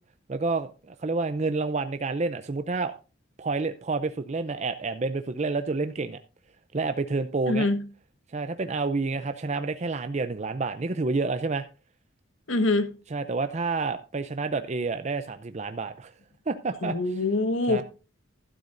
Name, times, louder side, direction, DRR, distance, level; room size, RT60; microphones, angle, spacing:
voice 1, 0.3-2.9 3.4-6.2 6.7-7.7 8.3-11.7 13.1-16.1 16.5-17.0 17.7-17.8, right 3 dB, 35° right, 0.5 m, -29 dB
voice 2, 7.5-7.8 12.5-12.9 16.8-17.8, left 2 dB, 90° left, 1.5 m, -24 dB
12.5 x 11.5 x 2.6 m
head